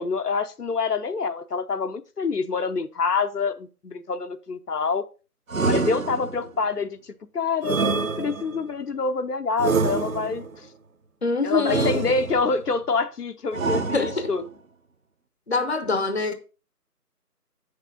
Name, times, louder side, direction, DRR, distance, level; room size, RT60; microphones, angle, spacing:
voice 1, 0.0-5.0 5.6-7.8 8.2-10.7 11.4-14.4, left 4 dB, 75° left, 0.8 m, -26 dB
sound 1, 5.5-6.6 7.6-8.7 9.6-10.5 11.7-12.6 13.5-14.5, right 4 dB, 60° right, 0.9 m, -26 dB
voice 2, 11.2-12.0 13.9-14.3 15.5-16.3, left 3 dB, 45° left, 0.8 m, -25 dB
8.1 x 6.6 x 3.8 m
figure-of-eight pair, 170°, 47 cm